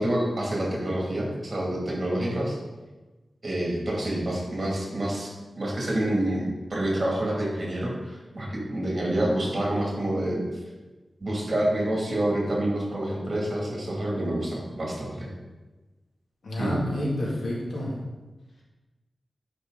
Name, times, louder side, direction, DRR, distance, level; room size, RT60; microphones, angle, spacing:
voice 1, 0.0-2.5 3.4-10.4 11.2-15.3 16.6-16.8, right 1 dB, 35° right, -3 dB, 2.6 m, -27 dB
voice 2, 16.4-17.9, left 1 dB, 75° left, -4 dB, 2.5 m, -29 dB
10.5 x 5.1 x 4.0 m, 1.2 s
wide cardioid pair, 120°, 0 cm